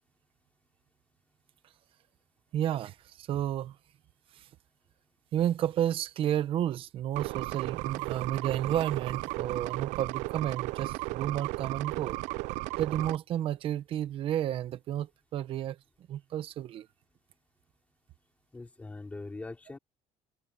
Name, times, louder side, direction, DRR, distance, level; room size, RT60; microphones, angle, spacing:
voice 1, 2.5-3.8 4.3-4.5 5.3-12.2 12.8-15.8 16.1-16.9, right 11 dB, 45° right, 0.9 m, -31 dB
sound 1, 7.1-13.2, right 22 dB, 85° right, 0.4 m, -35 dB
voice 2, 18.5-19.8, left 3 dB, 10° left, 3.3 m, -42 dB
cardioid pair, 165°, 12 cm